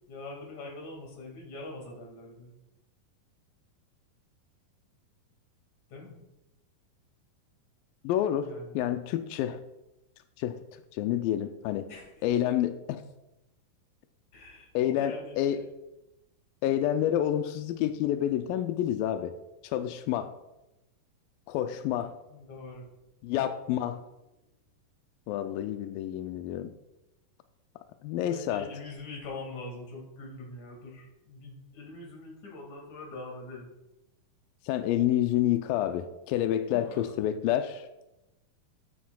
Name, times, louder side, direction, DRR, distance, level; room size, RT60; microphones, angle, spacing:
voice 1, 0.1-2.5 5.9-6.2 8.4-8.9 11.9-12.5 14.3-15.4 22.3-22.9 23.7-24.0 28.3-33.7 36.7-37.0, left 2 dB, 55° left, -1 dB, 3.2 m, -43 dB
voice 2, 8.0-8.5 8.7-9.6 10.4-10.6 10.9-11.9 12.2-13.0 14.7-15.7 16.6-19.3 19.6-20.3 21.5-22.1 23.2-24.0 25.3-26.7 28.0-28.7 34.7-38.1, left 11 dB, 85° left, 9 dB, 2.0 m, -28 dB
13.5 x 8.5 x 2.3 m, 0.95 s
omnidirectional pair, 4.5 m